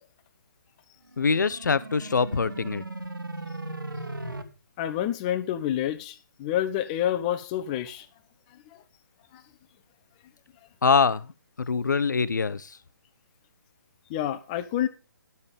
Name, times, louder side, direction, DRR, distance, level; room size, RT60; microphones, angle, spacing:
sound 1, 1.1-4.4, right 2 dB, 85° right, 1.9 m, -37 dB
voice 1, 1.2-2.8 10.8-11.3 11.6-12.8, left 5 dB, 60° left, 0.8 m, -24 dB
voice 2, 4.8-8.1 9.3-9.4 14.1-14.9, left 11 dB, 20° left, 0.8 m, -28 dB
12.0 x 7.0 x 5.3 m
figure-of-eight pair, 140°, 11 cm